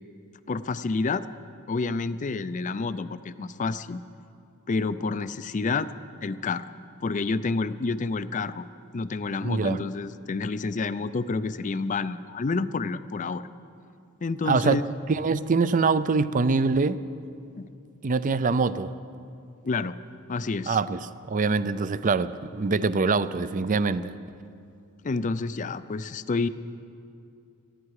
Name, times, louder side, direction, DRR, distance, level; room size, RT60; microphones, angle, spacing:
voice 1, 0.5-1.2 1.7-4.0 4.7-5.9 6.2-6.7 7.0-8.7 8.9-13.4 14.2-14.9 17.6-17.7 19.6-20.0 20.3-20.8 25.0-26.5, left 3 dB, 35° left, 14 dB, 0.4 m, -29 dB
voice 2, 9.4-9.8 14.5-14.8 15.1-17.0 18.0-18.9 20.7-21.0 21.3-24.1, right 4 dB, 40° right, 15 dB, 0.5 m, -24 dB
20.5 x 15.0 x 4.8 m, 2.5 s
head